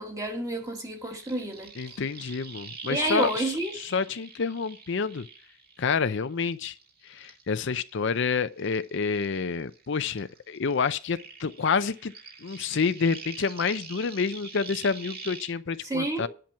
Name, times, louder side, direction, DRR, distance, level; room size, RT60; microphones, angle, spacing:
voice 1, 0.0-1.7 2.9-3.8 15.8-16.3, right 2 dB, 15° right, 1.8 m, -29 dB
sound 1, 0.6-6.2 6.5-9.9 10.1-15.5, right 4 dB, 45° right, 2.2 m, -44 dB
voice 2, 1.8-5.3 5.8-6.7 7.0-12.1 12.4-16.3, left 5 dB, 55° left, 0.5 m, -28 dB
10.5 x 6.0 x 6.1 m
head